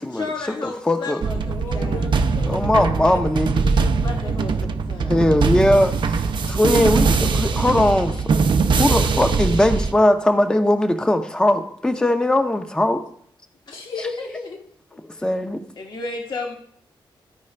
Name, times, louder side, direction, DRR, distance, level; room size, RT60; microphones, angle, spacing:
voice 1, 0.0-2.1 4.0-5.4 13.7-13.8 15.8-16.6, left 3 dB, 55° left, 0 dB, 1.3 m, -33 dB
voice 2, 0.8-1.2 2.5-3.6 5.0-8.2 8.7-13.0 15.0-15.6, left 1 dB, 10° left, 6 dB, 0.7 m, -20 dB
sound 1, 1.2-9.9, right 4 dB, 60° right, 0.6 m, -21 dB
voice 3, 1.5-3.3 3.6-4.6 13.7-14.6 14.9-15.3, left 3 dB, 80° left, -2 dB, 2.6 m, -35 dB
14.0 x 4.9 x 3.3 m, 0.64 s
cardioid pair, 85°, 9 cm